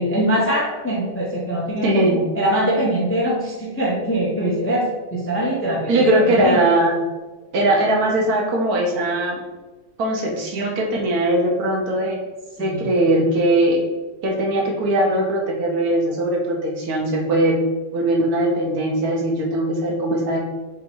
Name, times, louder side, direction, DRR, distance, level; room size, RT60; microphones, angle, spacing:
voice 1, 0.0-2.1 2.3-6.6 12.6-12.9, right 1 dB, 15° left, -4 dB, 0.4 m, -22 dB
voice 2, 1.8-2.2 5.9-7.0 7.5-9.4 10.0-12.2 12.6-13.8 14.2-17.6 17.9-20.4, right 1 dB, 70° right, -1 dB, 1.3 m, -20 dB
3.6 x 2.7 x 4.4 m, 1.2 s
omnidirectional pair, 1.7 m